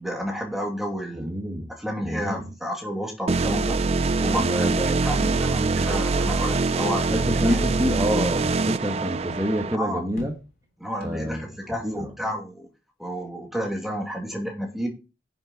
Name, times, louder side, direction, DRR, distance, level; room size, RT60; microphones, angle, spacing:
voice 1, 0.0-1.3 1.8-3.8 4.2-7.1 7.3-7.9 9.7-10.0 10.8-12.7 13.0-14.9, equal, ahead, 2.4 m, -31 dB
voice 2, 1.1-1.7 2.0-2.4 4.4-5.0 7.1-10.3 11.0-11.4 11.8-12.1, equal, 20° right, 1.5 m, -27 dB
sound 1, 3.3-9.8, right 3 dB, 35° right, 0.4 m, -24 dB
sound 2, 10.2-10.7 11.0-11.7, left 1 dB, 50° left, 3.3 m, -44 dB
10.5 x 6.4 x 4.2 m
head